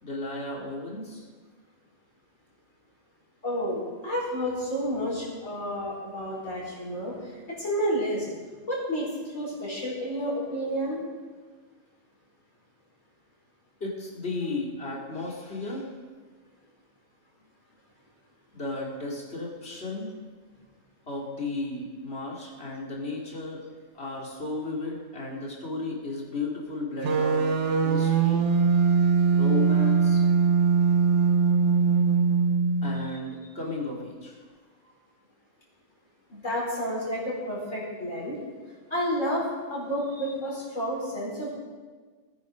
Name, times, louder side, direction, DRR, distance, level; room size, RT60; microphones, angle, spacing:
voice 1, 0.0-1.2 13.8-15.9 18.5-20.1 21.1-23.6 23.9-27.5 27.8-28.4 29.3-30.3 32.8-34.4, left 2 dB, 55° left, -2 dB, 3.2 m, -34 dB
voice 2, 3.4-8.2 8.7-11.0 32.9-33.0 36.3-38.4 38.9-41.5, equal, 75° left, -5 dB, 5.5 m, -30 dB
sound 1, 27.0-33.1, right 5 dB, 65° right, 1.3 m, -22 dB
19.0 x 10.0 x 5.3 m, 1.4 s
omnidirectional pair, 1.3 m